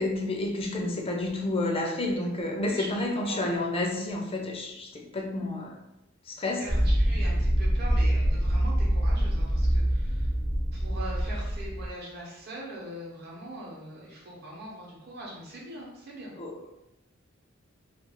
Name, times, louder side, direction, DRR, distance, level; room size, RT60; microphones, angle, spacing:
voice 1, 0.0-5.8 6.3-6.7 16.4-16.7, left 2 dB, 30° left, 1 dB, 0.4 m, -30 dB
voice 2, 2.6-3.6 6.6-10.3 10.7-16.3, right 1 dB, 55° right, -4 dB, 0.8 m, -42 dB
sound 1, 6.7-11.9, equal, 30° right, 0.6 m, -25 dB
2.4 x 2.3 x 2.9 m, 0.88 s
head